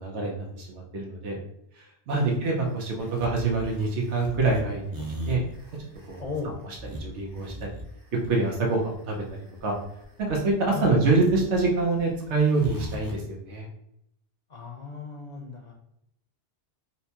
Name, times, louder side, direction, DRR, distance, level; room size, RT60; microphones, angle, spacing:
voice 1, 0.0-1.4 1.8-5.4 6.1-6.2 6.6-7.7 8.3-9.2 9.6-9.7 10.2-13.7, right 3 dB, 90° right, -1 dB, 1.1 m, -26 dB
sound 1, 2.1-13.1, right 1 dB, 30° right, 0.4 m, -40 dB
voice 2, 6.2-6.5 10.7-10.9 14.5-15.7, left 4 dB, 45° left, 0 dB, 0.7 m, -35 dB
4.2 x 2.2 x 2.8 m, 0.77 s
omnidirectional pair, 1.1 m